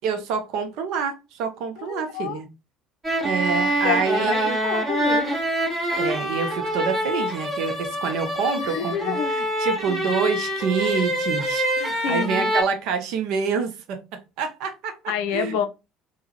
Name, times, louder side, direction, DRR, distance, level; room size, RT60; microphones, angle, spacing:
voice 1, 0.0-2.5 3.2-4.6 6.0-14.0 14.4-15.6, right 6 dB, 60° right, 0.7 m, -27 dB
voice 2, 1.8-2.4 3.8-5.4 8.6-9.3 9.9-10.0 12.0-12.5 15.1-15.7, left 8 dB, 60° left, 0.5 m, -28 dB
sound 1, 3.0-12.6, right 1 dB, 25° right, 1.3 m, -25 dB
3.5 x 2.2 x 2.9 m
figure-of-eight pair, 60°, 0 cm